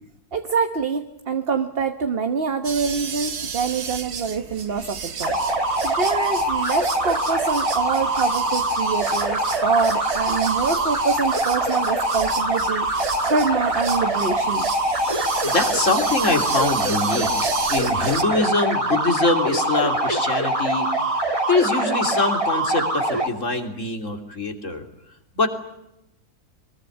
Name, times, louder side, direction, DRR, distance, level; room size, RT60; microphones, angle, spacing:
voice 1, 0.3-14.7, right 5 dB, 40° right, 7 dB, 1.3 m, -25 dB
sound 1, 2.6-18.2, right 6 dB, 85° right, 2.0 m, -33 dB
sound 2, 5.2-23.3, right 1 dB, 20° right, 2.4 m, -23 dB
voice 2, 15.4-21.2 21.5-24.8 25.4-25.5, left 3 dB, 55° left, 5 dB, 3.5 m, -24 dB
23.5 x 21.5 x 9.8 m, 0.90 s
omnidirectional pair, 1.6 m